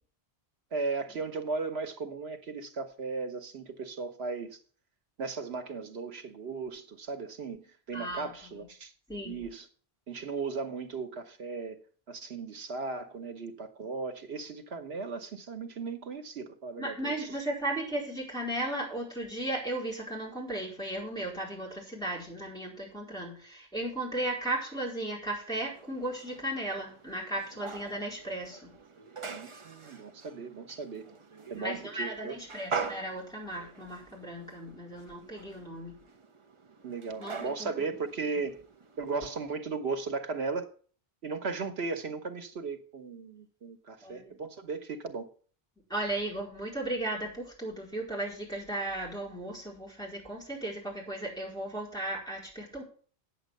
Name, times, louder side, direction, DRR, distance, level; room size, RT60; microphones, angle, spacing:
voice 1, 0.7-4.6 5.2-8.9 9.2-9.7 10.1-11.8 12.1-17.4 29.3-31.1 31.5-32.4 36.8-38.6 39.0-40.7 41.2-45.3, right 4 dB, 85° right, 1.3 m, -36 dB
voice 2, 7.9-8.6 9.1-9.4 16.8-28.7 31.5-35.9 37.2-37.9 44.0-44.3 45.9-52.8, right 1 dB, 5° left, 4.6 m, -36 dB
sound 1, 25.6-39.4, right 5 dB, 35° right, 0.8 m, -44 dB
9.1 x 7.5 x 6.5 m
omnidirectional pair, 1.0 m